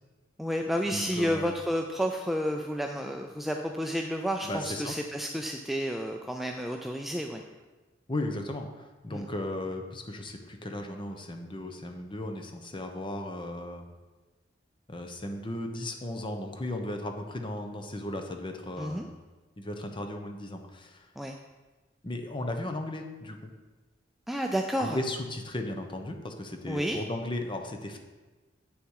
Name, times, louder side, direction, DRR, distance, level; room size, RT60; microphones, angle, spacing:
voice 1, 0.4-7.4 9.1-9.2 18.8-19.1 21.2-21.4 24.3-25.0 26.7-27.0, equal, ahead, 2 dB, 0.4 m, -31 dB
voice 2, 0.9-1.6 4.4-4.9 8.1-13.8 14.9-19.1 19.6-21.1 22.0-23.5 24.8-28.0, left 1 dB, 25° left, 4 dB, 0.9 m, -36 dB
7.9 x 6.8 x 4.7 m, 1.2 s
head